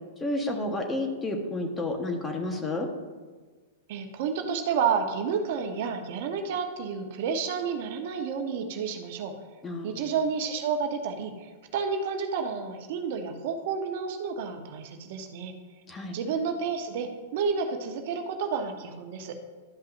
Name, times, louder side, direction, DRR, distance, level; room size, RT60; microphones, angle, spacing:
voice 1, 0.2-2.9 9.6-10.1 15.9-16.2, left 2 dB, 15° left, 3 dB, 1.3 m, -31 dB
voice 2, 3.9-9.3 9.8-15.5 16.1-19.4, right 6 dB, 60° right, 5 dB, 0.9 m, -30 dB
12.0 x 5.5 x 2.6 m, 1.4 s
hypercardioid pair, 115°, 0 cm